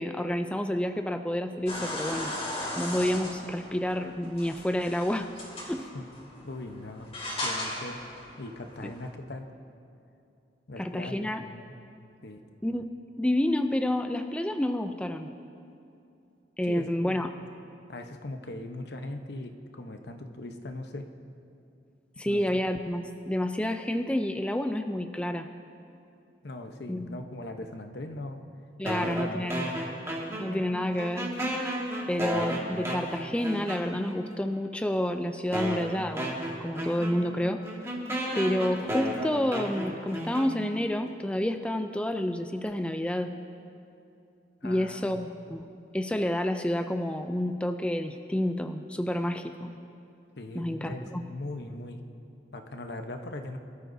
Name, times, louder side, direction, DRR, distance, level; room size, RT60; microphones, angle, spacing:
voice 1, 0.0-2.3 2.8-5.3 5.6-5.8 8.8-8.9 10.8-11.4 12.6-12.9 13.2-15.3 16.6-17.3 22.2-25.5 26.9-27.2 28.8-29.7 30.4-31.3 32.1-36.4 36.6-37.6 38.3-43.3 44.6-45.7 45.9-49.7 50.6-51.2, left 1 dB, 5° left, 6 dB, 0.4 m, -29 dB
sound 1, 1.7-9.1, left 1 dB, 35° left, 3.1 m, -37 dB
voice 2, 6.4-7.1 7.4-8.0 8.4-9.5 10.7-11.7 12.2-12.4 16.6-17.2 17.9-21.1 22.2-22.6 26.4-28.4 28.8-29.8 44.6-45.3 50.4-52.0 52.5-53.6, left 2 dB, 65° left, 5 dB, 0.9 m, -40 dB
sound 2, 28.9-30.7 31.0-34.2 34.9-35.0 35.5-40.9, equal, 15° right, 1.8 m, -33 dB
23.5 x 13.0 x 2.7 m, 2.6 s
head